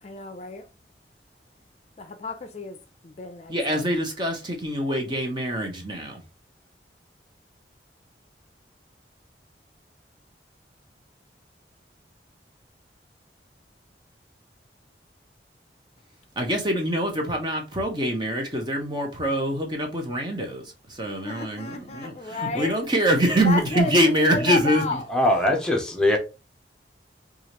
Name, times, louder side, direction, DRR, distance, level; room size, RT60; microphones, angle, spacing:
voice 1, 0.0-0.7 2.0-2.8 3.0-3.8 21.2-22.8 23.4-25.6, left 3 dB, 40° left, 0.5 m, -32 dB
voice 2, 3.5-6.2 16.4-25.0, equal, 25° right, 0.9 m, -24 dB
voice 3, 25.1-26.2, left 1 dB, 5° left, 0.8 m, -21 dB
4.8 x 2.5 x 3.0 m
head